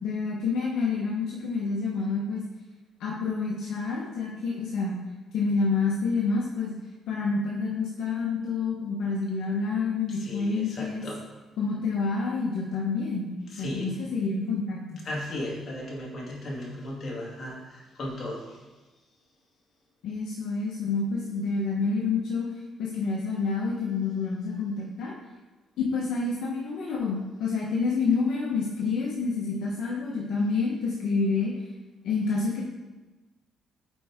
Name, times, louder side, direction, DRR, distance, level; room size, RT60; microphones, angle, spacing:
voice 1, 0.0-2.4 3.0-4.9 5.3-6.7 7.1-11.1 11.6-13.3 13.6-15.0 20.0-25.1 25.8-31.6 32.0-32.6, left 4 dB, 80° left, -3 dB, 1.1 m, -28 dB
voice 2, 10.1-11.3 13.5-13.9 15.0-18.6, left 1 dB, 50° left, -3 dB, 2.2 m, -36 dB
8.4 x 4.6 x 3.6 m, 1.2 s
cardioid pair, 90°, 0 cm